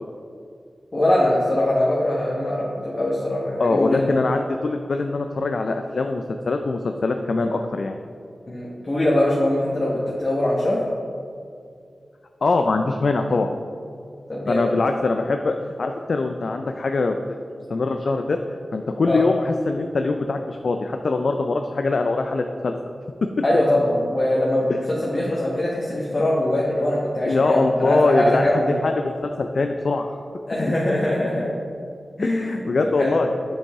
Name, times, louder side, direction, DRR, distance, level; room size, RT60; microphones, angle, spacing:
voice 1, 0.9-4.2 8.5-10.8 14.3-14.8 19.1-19.2 23.4-28.7 30.5-31.5 32.2-32.5 32.8-33.1, left 1 dB, 45° left, -5 dB, 1.2 m, -22 dB
voice 2, 3.6-8.0 12.4-13.5 14.5-17.2 17.7-18.4 18.7-22.7 27.2-30.2 32.2-33.3, left 3 dB, 70° left, 5 dB, 0.3 m, -23 dB
7.3 x 5.3 x 3.6 m, 2.3 s
cardioid pair, 45°, 0 cm